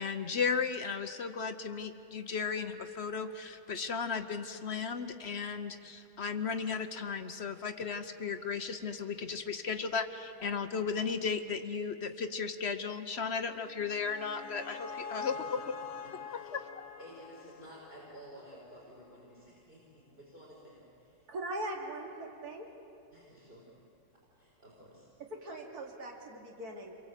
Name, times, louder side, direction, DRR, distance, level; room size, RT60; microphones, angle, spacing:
voice 1, 0.0-15.6 16.3-16.6, left 5 dB, 55° left, 8 dB, 0.7 m, -35 dB
sound 1, 13.5-18.7, left 6 dB, 80° left, 1.9 m, -45 dB
voice 2, 16.0-16.6 17.0-21.3 23.1-23.8 24.3-25.1, right 1 dB, 25° right, -6 dB, 5.3 m, -53 dB
voice 3, 21.3-22.7 25.3-27.0, right 1 dB, 45° right, 1 dB, 3.0 m, -40 dB
28.0 x 23.0 x 8.2 m, 2.6 s
omnidirectional pair, 2.3 m